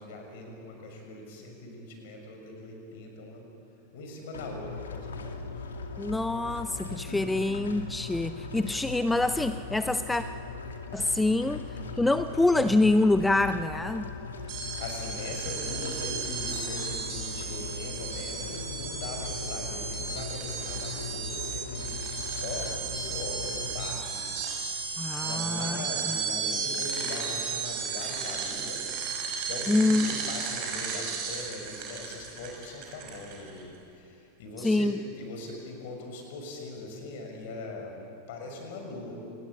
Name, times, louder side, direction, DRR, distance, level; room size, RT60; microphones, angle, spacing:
voice 1, 0.0-3.5 3.9-5.4 7.0-7.3 8.6-8.7 11.4-11.5 14.5-24.6 24.9-28.8 29.4-39.2, left 2 dB, 50° left, 2 dB, 6.5 m, -41 dB
sound 1, 4.3-23.9, left 4 dB, 70° left, 2.4 m, -39 dB
voice 2, 6.0-10.2 10.9-11.7 12.0-14.1 25.0-26.2 29.7-30.1 34.6-34.9, left 2 dB, 5° left, 12 dB, 0.6 m, -26 dB
sound 2, 14.5-33.6, right 5 dB, 45° right, 6.6 m, -34 dB
28.0 x 20.5 x 8.7 m, 2.7 s
figure-of-eight pair, 90°, 0 cm